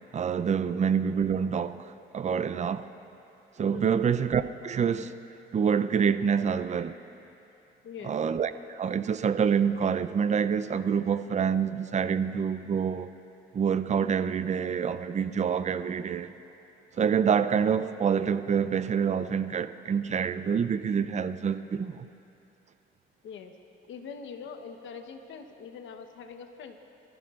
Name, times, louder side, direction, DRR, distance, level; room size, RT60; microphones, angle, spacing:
voice 1, 0.1-2.9 3.6-5.1 5.5-6.9 8.0-13.1 13.5-16.3 17.0-22.1, right 7 dB, 35° right, 0.5 m, -27 dB
voice 2, 7.8-8.2 23.2-23.5 23.9-26.8, left 6 dB, 75° left, 1.1 m, -43 dB
23.5 x 16.0 x 2.5 m
cardioid pair, 90°, 20 cm